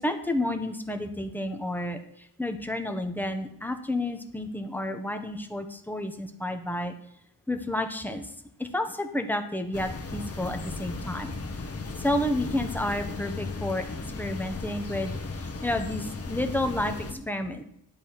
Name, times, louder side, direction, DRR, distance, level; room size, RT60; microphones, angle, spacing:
voice 1, 0.0-6.9 7.5-8.3 8.6-11.3 12.0-17.7, left 1 dB, 5° left, 6 dB, 1.0 m, -31 dB
sound 1, 9.7-17.1, left 3 dB, 40° left, 1.3 m, -36 dB
10.5 x 4.2 x 7.2 m, 0.77 s
wide cardioid pair, 100°, 37 cm